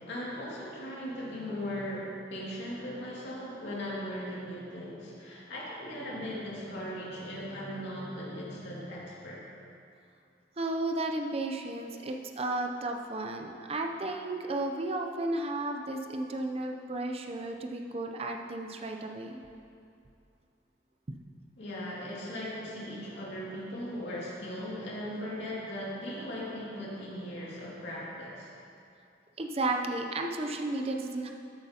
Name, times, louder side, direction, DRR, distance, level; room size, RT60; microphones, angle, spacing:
voice 1, 0.0-9.4 21.6-28.5, equal, 75° left, -6 dB, 2.4 m, -38 dB
voice 2, 10.6-19.4 29.4-31.3, right 2 dB, 35° right, 3 dB, 0.5 m, -33 dB
13.5 x 8.0 x 2.9 m, 2.6 s
head